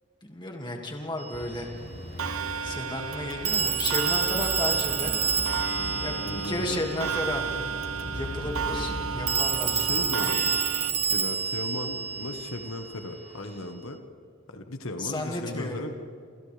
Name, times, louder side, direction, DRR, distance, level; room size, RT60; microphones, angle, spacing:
voice 1, 0.2-1.7 2.6-5.2 6.0-7.4 8.1-10.3 15.0-15.9, left 1 dB, 20° left, 1 dB, 2.2 m, -33 dB
Telephone, 1.2-1.3 3.4-7.1 9.3-13.0, right 6 dB, 30° right, 1.2 m, -28 dB
sound 1, 1.3-13.6, left 1 dB, 45° left, 6.4 m, -40 dB
Clock, 2.2-10.9, right 6 dB, 90° right, 0.9 m, -33 dB
voice 2, 6.2-7.2 9.7-14.0 14.5-15.9, left 2 dB, 80° left, 6 dB, 1.4 m, -37 dB
28.5 x 27.5 x 3.4 m, 2.3 s
head